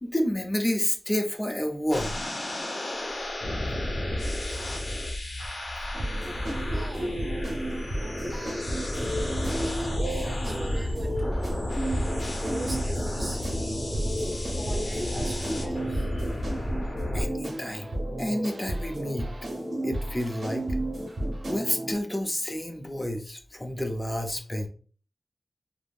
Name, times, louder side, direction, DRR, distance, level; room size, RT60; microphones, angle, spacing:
voice 1, 0.0-2.1 17.1-17.9 18.2-19.3 19.8-20.6 21.5-24.7, left 1 dB, 20° left, 4 dB, 0.5 m, -29 dB
sound 1, 1.9-17.2, left 1 dB, 75° left, 0.7 m, -32 dB
sound 2, 5.9-21.9, right 1 dB, 75° right, 0.7 m, -32 dB
voice 2, 6.7-7.3 8.3-8.7 9.6-11.7 12.3-13.4 14.4-16.2, right 1 dB, 35° right, 2 dB, 1.0 m, -40 dB
3.4 x 2.0 x 2.4 m, 0.39 s
cardioid pair, 50°, 0 cm